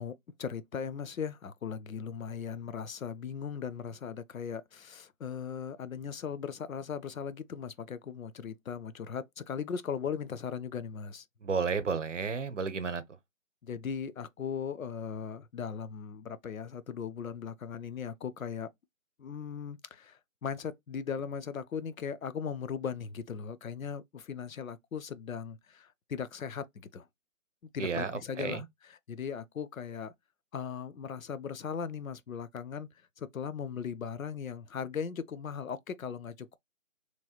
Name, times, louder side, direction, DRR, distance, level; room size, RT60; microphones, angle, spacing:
voice 1, 0.0-11.3 13.6-18.7 19.2-27.1 27.7-28.6 29.1-30.1 30.5-32.9 33.2-36.6, left 7 dB, 80° left, 0.6 m, -38 dB
voice 2, 11.4-13.2 27.8-28.7, right 5 dB, 60° right, 0.7 m, -32 dB
3.1 x 2.9 x 2.3 m
hypercardioid pair, 180°, 41 cm